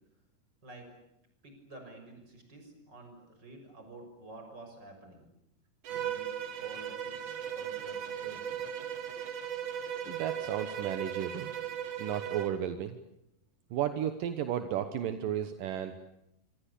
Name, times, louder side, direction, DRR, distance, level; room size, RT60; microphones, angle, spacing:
voice 1, 1.4-5.2 5.9-6.3 6.6-8.6, right 2 dB, 30° right, 4 dB, 7.0 m, -50 dB
Bowed string instrument, 5.8-12.6, right 9 dB, 55° right, 2.7 m, -37 dB
voice 2, 10.1-11.5 12.0-13.0 13.7-16.1, right 10 dB, 75° right, 9 dB, 2.8 m, -34 dB
26.0 x 25.0 x 8.5 m, 0.83 s
omnidirectional pair, 3.9 m